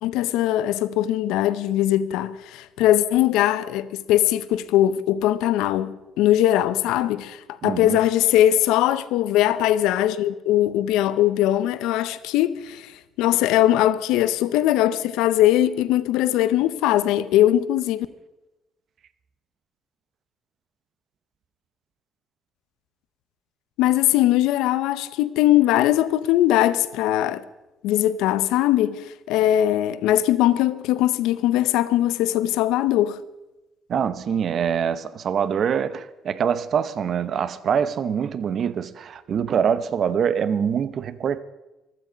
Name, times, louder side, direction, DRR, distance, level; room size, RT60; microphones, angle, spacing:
voice 1, 0.0-12.9 13.2-18.1 23.8-27.4 27.8-33.2, left 13 dB, 90° left, 0.6 m, -20 dB
voice 2, 7.6-8.0 33.9-41.4, right 7 dB, 50° right, 0.8 m, -24 dB
15.0 x 12.5 x 5.1 m
cardioid pair, 100°, 0 cm